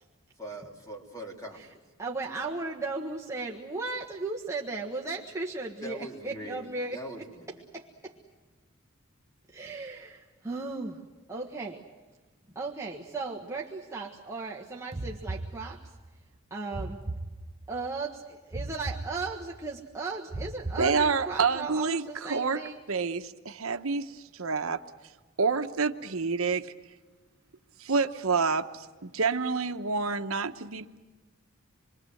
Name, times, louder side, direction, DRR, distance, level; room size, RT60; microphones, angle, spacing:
voice 1, 0.4-1.8 5.8-7.5, right 1 dB, 15° left, 1 dB, 3.3 m, -42 dB
voice 2, 2.0-7.3 7.7-8.2 9.5-11.0 11.3-11.8 12.5-16.0 16.5-17.0 17.7-22.8, right 3 dB, 15° right, -2 dB, 1.4 m, -36 dB
sound 1, 14.9-16.1 16.7-17.9 18.5-19.7 20.3-21.5, right 2 dB, 30° right, 0.7 m, -38 dB
voice 3, 20.8-22.6 22.9-24.8 25.4-26.7 27.8-31.0, right 4 dB, 80° right, 8 dB, 1.0 m, -28 dB
27.0 x 23.0 x 7.8 m, 1.3 s
head